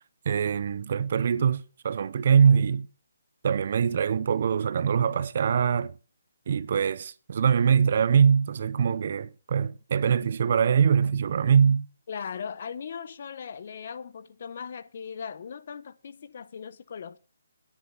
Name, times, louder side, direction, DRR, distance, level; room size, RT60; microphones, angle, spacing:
voice 1, 0.3-2.9 3.4-5.9 6.5-11.9, right 7 dB, 45° right, 0.6 m, -23 dB
voice 2, 12.1-17.2, left 6 dB, 45° left, 0.8 m, -38 dB
10.0 x 9.8 x 5.9 m
hypercardioid pair, 170°, 0 cm